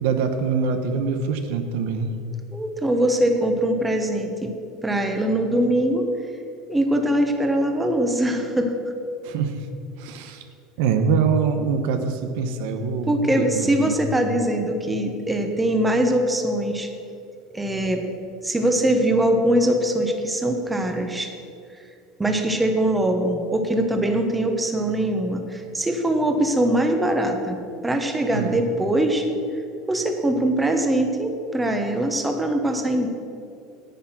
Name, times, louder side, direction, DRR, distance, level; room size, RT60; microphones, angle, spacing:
voice 1, 0.0-2.1 9.2-9.5 10.0-10.4 10.8-14.0 28.3-28.5, right 5 dB, 75° right, 7 dB, 1.0 m, -24 dB
voice 2, 2.5-4.5 4.8-6.1 6.7-8.7 13.1-16.9 17.5-18.0 18.4-21.3 22.2-27.6 27.8-29.3 29.9-33.1, right 1 dB, 10° right, 4 dB, 1.1 m, -22 dB
10.0 x 8.4 x 5.9 m, 2.5 s
supercardioid pair, 130°, 0 cm